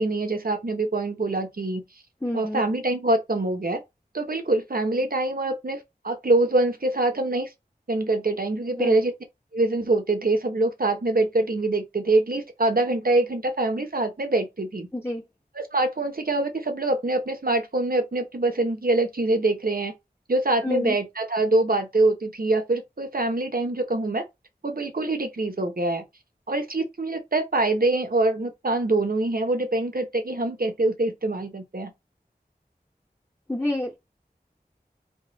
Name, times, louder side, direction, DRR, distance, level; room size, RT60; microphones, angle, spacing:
voice 1, 0.0-1.8 2.3-3.8 4.1-7.5 7.9-9.1 9.5-14.9 15.5-19.9 20.3-24.2 24.6-26.0 26.5-31.9, right 2 dB, 60° right, 0.9 m, -24 dB
voice 2, 2.2-2.6 8.8-9.0 14.9-15.2 20.6-21.0 33.5-34.0, left 1 dB, 15° left, 0.9 m, -27 dB
3.5 x 2.3 x 3.9 m
wide cardioid pair, 45°, 17 cm